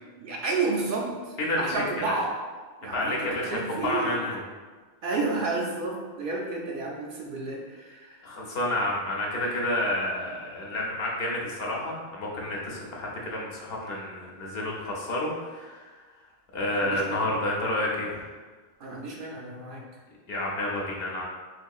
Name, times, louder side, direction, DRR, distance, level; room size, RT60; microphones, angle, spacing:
voice 1, 0.2-2.4 2.8-4.2 5.0-8.3 16.8-17.2 18.8-19.8, right 3 dB, 65° right, -1 dB, 0.7 m, -31 dB
voice 2, 1.4-2.1 2.9-4.4 8.2-15.9 16.5-18.3 20.3-21.2, left 1 dB, 70° left, -3 dB, 0.9 m, -30 dB
4.4 x 2.7 x 2.3 m, 1.4 s
omnidirectional pair, 1.0 m